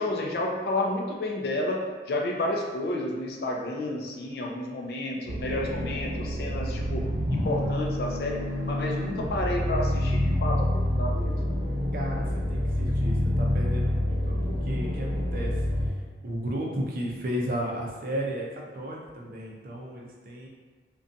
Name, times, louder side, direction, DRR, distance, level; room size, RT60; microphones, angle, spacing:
voice 1, 0.0-7.0 7.3-8.4 8.7-11.3, left 1 dB, 60° left, 0 dB, 0.4 m, -31 dB
sound 1, 5.3-15.9, left 1 dB, 75° right, 0.8 m, -27 dB
voice 2, 11.9-15.5 16.2-18.5 18.7-20.5, equal, 50° right, -2 dB, 0.5 m, -34 dB
2.5 x 2.2 x 2.5 m, 1.5 s
head